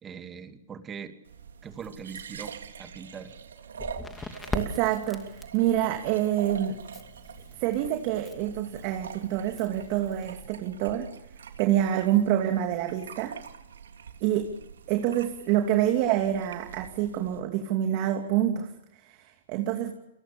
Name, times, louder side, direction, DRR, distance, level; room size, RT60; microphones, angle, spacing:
voice 1, 0.0-1.2 1.6-3.3, right 6 dB, 20° right, 7 dB, 2.6 m, -41 dB
sound 1, 1.3-17.4, right 7 dB, 85° right, 3.2 m, -45 dB
Crackle, 3.7-10.5, left 3 dB, 10° left, 2.5 m, -41 dB
voice 2, 4.5-6.8 7.6-11.1 11.6-13.4 14.2-14.5 14.9-19.9, right 11 dB, 40° right, 4 dB, 2.8 m, -27 dB
30.0 x 23.0 x 7.1 m, 0.84 s
hypercardioid pair, 135°, 0 cm